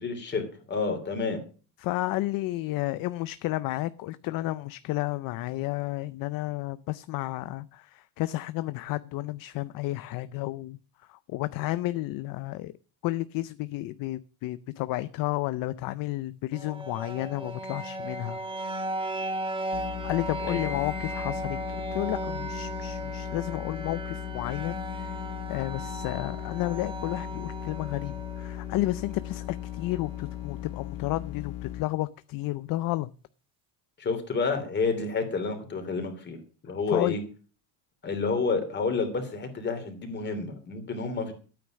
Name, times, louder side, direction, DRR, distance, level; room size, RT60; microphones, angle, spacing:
voice 1, 0.0-1.4 20.4-20.7 34.0-37.2 38.0-41.3, left 4 dB, 25° left, 3.1 m, -30 dB
voice 2, 1.8-10.8 11.1-12.7 13.0-18.4 20.0-21.6 21.9-25.2 25.5-33.1 36.9-37.3, left 17 dB, 45° left, 0.5 m, -32 dB
sound 1, 16.5-30.5, right 2 dB, 10° right, 1.3 m, -36 dB
sound 2, 19.7-31.8, left 13 dB, 85° left, 1.3 m, -38 dB
12.5 x 9.3 x 6.3 m
cardioid pair, 170°, 46 cm